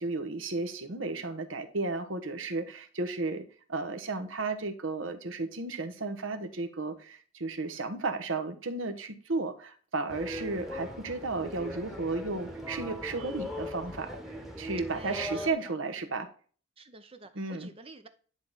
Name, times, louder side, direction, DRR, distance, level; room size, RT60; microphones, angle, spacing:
voice 1, 0.0-14.2 14.6-16.3 17.3-17.7, right 3 dB, 70° right, 1.2 m, -34 dB
sound 1, 10.1-15.5, equal, ahead, 1.1 m, -39 dB
voice 2, 14.9-15.7 16.8-18.1, right 3 dB, 30° right, 0.6 m, -49 dB
10.5 x 3.6 x 3.9 m
head